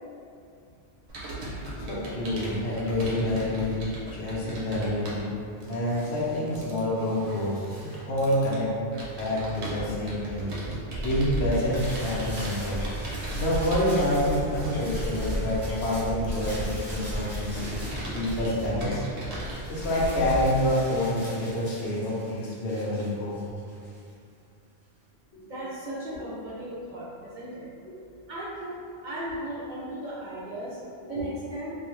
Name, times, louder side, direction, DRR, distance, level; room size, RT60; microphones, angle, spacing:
Computer keyboard, 1.1-19.5, right 1 dB, 80° right, 0.9 m, -39 dB
voice 1, 1.9-3.8 4.1-5.2 5.7-8.7 9.2-10.5 11.0-12.8 13.3-17.6 18.1-19.0 19.7-23.4 25.3-25.5 31.0-31.2, left 1 dB, 75° left, -5 dB, 0.9 m, -27 dB
sound 1, 10.9-20.7, equal, 45° left, 0.4 m, -34 dB
sound 2, 11.4-19.0 19.3-24.1, equal, 20° right, 0.8 m, -43 dB
voice 2, 25.5-27.7 28.3-31.8, right 1 dB, 55° right, -8 dB, 0.6 m, -36 dB
2.3 x 2.1 x 2.9 m, 2.4 s
omnidirectional pair, 1.1 m